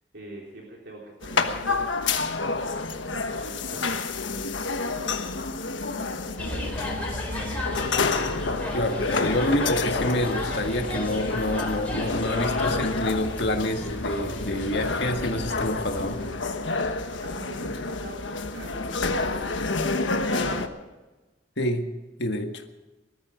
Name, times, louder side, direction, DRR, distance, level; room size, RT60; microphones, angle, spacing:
voice 1, 0.1-4.2 4.8-8.0 17.2-19.7 20.0-20.8, right 1 dB, 65° right, -2 dB, 3.6 m, -44 dB
sound 1, 1.2-20.7, left 3 dB, 90° left, 1.3 m, -29 dB
sound 2, 6.4-16.3, left 1 dB, 10° left, 4.6 m, -34 dB
voice 2, 8.7-16.2 21.6-21.8 22.2-22.6, left 1 dB, 65° left, 4 dB, 1.8 m, -27 dB
20.5 x 13.5 x 5.1 m, 1.1 s
head